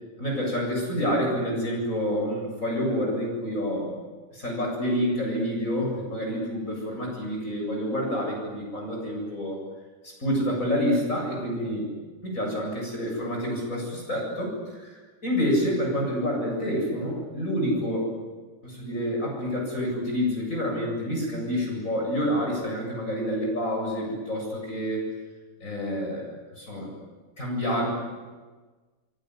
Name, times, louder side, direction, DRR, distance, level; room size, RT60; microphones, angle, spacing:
voice 1, 0.2-3.9 4.3-9.6 10.0-11.9 12.2-15.0 15.2-18.0 18.6-25.0 25.6-26.3 26.6-26.9 27.4-27.9, equal, 45° left, -1 dB, 8.5 m, -28 dB
26.5 x 23.0 x 9.9 m, 1.3 s
omnidirectional pair, 1.9 m